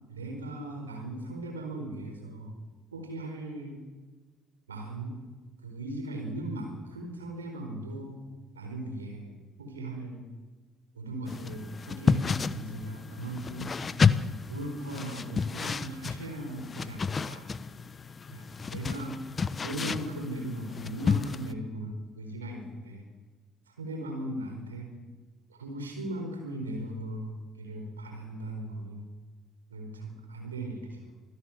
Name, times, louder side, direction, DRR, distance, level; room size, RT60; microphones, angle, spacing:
voice 1, 0.1-2.6 2.9-3.8 4.7-5.1 5.6-8.2 8.5-10.2 10.9-13.7 14.5-17.5 18.3-19.2 19.6-23.0 23.8-24.9 25.5-29.1 29.7-31.0, right 1 dB, 85° right, 3 dB, 4.6 m, -38 dB
sound 1, 11.3-21.5, left 5 dB, 35° left, 1.1 m, -31 dB
26.0 x 16.5 x 7.5 m, 1.3 s
figure-of-eight pair, 50°, 0 cm